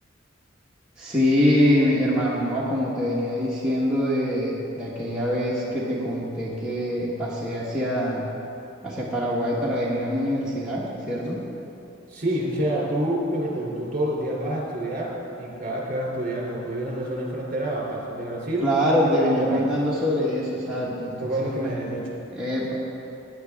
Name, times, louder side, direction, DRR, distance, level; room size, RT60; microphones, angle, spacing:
voice 1, 1.0-8.3 8.8-11.4 18.6-21.7 22.3-22.8, equal, 5° right, -8 dB, 1.3 m, -24 dB
voice 2, 12.1-18.7 19.2-19.6 21.2-22.1, right 1 dB, 40° right, -3 dB, 3.1 m, -28 dB
18.5 x 9.7 x 3.6 m, 2.8 s
head